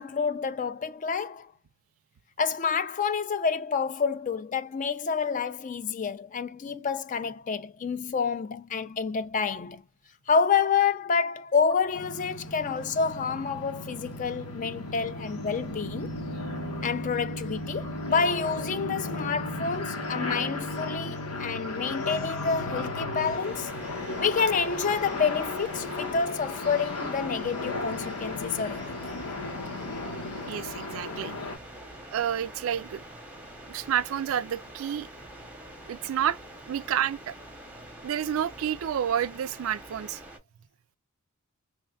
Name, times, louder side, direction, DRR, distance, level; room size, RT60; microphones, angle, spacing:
voice 1, 0.0-1.5 2.4-9.8 10.3-16.2 16.8-23.7 24.2-28.9 29.2-29.3, left 5 dB, 35° left, 0.3 m, -28 dB
sound 1, 11.9-31.6, left 2 dB, 90° left, 1.1 m, -35 dB
sound 2, 23.2-40.4, right 1 dB, 5° right, 0.8 m, -45 dB
voice 2, 30.5-31.3 32.1-33.0 33.7-35.1 35.9-36.4 36.7-37.3 38.0-40.2, right 9 dB, 70° right, 0.3 m, -29 dB
3.4 x 2.2 x 2.3 m
head